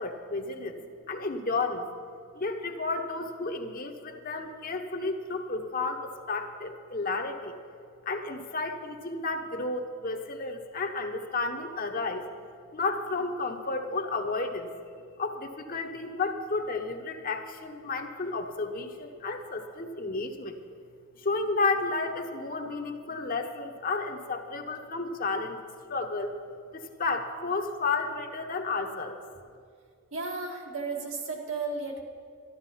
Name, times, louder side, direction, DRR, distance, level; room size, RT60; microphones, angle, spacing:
voice 1, 0.0-1.8 2.3-7.5 8.1-12.3 12.7-14.7 15.2-20.6 21.2-25.6 25.9-26.4 26.7-29.2, left 3 dB, 40° left, 5 dB, 0.9 m, -32 dB
voice 2, 30.1-32.0, right 3 dB, 75° right, 0 dB, 1.9 m, -34 dB
12.5 x 12.5 x 5.6 m, 2.2 s
head